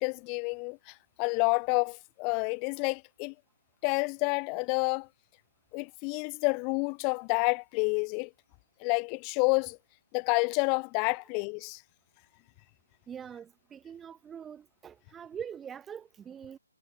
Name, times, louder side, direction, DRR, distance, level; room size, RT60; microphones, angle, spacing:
voice 1, 0.0-3.3 3.8-5.1 5.7-8.3 8.8-9.8 10.1-11.8, left 37 dB, 20° left, 5.9 m, -29 dB
voice 2, 13.1-16.6, right 8 dB, 10° right, 3.1 m, -43 dB
figure-of-eight pair, 145°, 0 cm